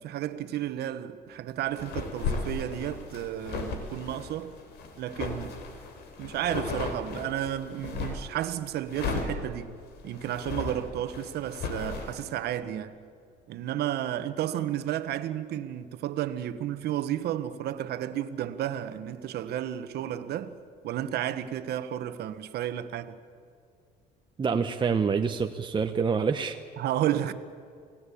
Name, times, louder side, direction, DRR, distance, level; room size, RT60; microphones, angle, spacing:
voice 1, 0.0-4.5 5.0-5.6 6.2-9.7 10.0-13.0 13.5-20.5 20.8-23.2 26.8-27.3, right 11 dB, 70° right, 1.4 m, -32 dB
sound 1, 1.7-8.3 8.9-12.2, left 4 dB, 80° left, 3.8 m, -36 dB
voice 2, 24.4-26.6, right 5 dB, 30° right, 1.1 m, -26 dB
28.5 x 18.5 x 8.6 m
cardioid pair, 110°, 17 cm